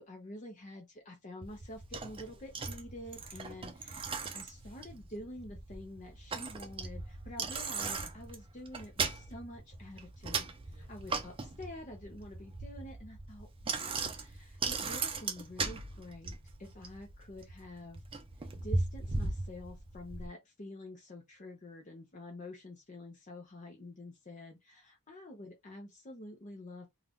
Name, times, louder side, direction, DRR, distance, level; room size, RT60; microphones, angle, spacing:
voice 1, 0.0-4.0 4.3-18.0 18.6-26.9, left 1 dB, 35° left, 0.7 m, -48 dB
Bicycle, 1.4-20.3, right 4 dB, 25° right, 0.5 m, -38 dB
2.7 x 2.4 x 3.4 m
head